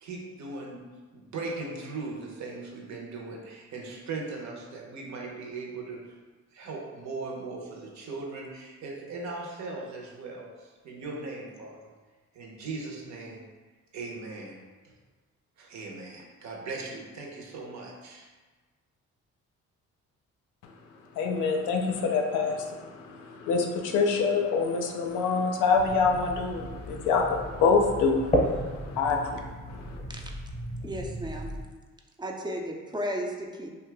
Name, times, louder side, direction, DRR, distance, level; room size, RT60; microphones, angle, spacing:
voice 1, 0.0-0.8 1.1-6.1 6.5-11.9 12.3-13.4 13.9-14.9 15.6-18.3, right 3 dB, 65° right, 0 dB, 0.7 m, -39 dB
voice 2, 21.2-29.3 29.7-30.0, left 4 dB, 80° left, 2 dB, 0.5 m, -26 dB
sound 1, 25.7-31.6, equal, 20° left, 0.7 m, -33 dB
voice 3, 30.8-31.5 32.2-33.7, equal, 15° right, 1 dB, 0.3 m, -34 dB
2.7 x 2.3 x 3.3 m, 1.3 s
cardioid pair, 90°, 30 cm